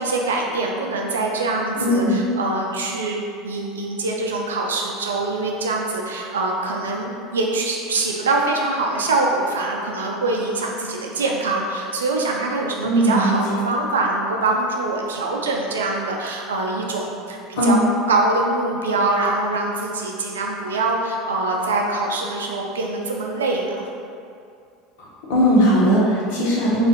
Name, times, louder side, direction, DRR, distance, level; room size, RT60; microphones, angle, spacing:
voice 1, 0.0-17.8 18.1-23.8, right 2 dB, 85° right, 0 dB, 0.4 m, -24 dB
voice 2, 1.8-2.2 12.8-13.6 17.6-17.7 25.3-26.9, equal, 70° left, -6 dB, 0.9 m, -18 dB
2.6 x 2.4 x 3.8 m, 2.4 s
hypercardioid pair, 80°, 0 cm